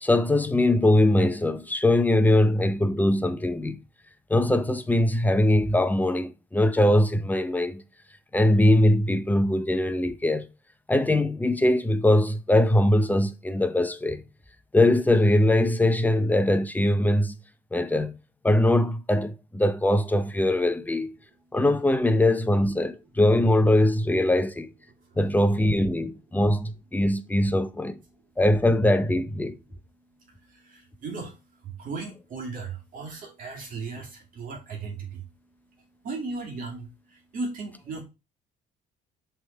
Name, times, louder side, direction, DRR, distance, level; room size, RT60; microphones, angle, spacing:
voice 1, 0.0-3.8 4.3-7.8 8.3-10.5 10.9-14.2 14.7-17.4 17.7-18.2 18.4-21.1 21.5-24.7 25.2-28.0 28.4-29.5, left 1 dB, 10° left, 0.6 m, -22 dB
voice 2, 30.4-35.2 36.0-38.0, right 4 dB, 55° right, 2.3 m, -36 dB
6.1 x 3.6 x 4.3 m
cardioid pair, 110°, 17 cm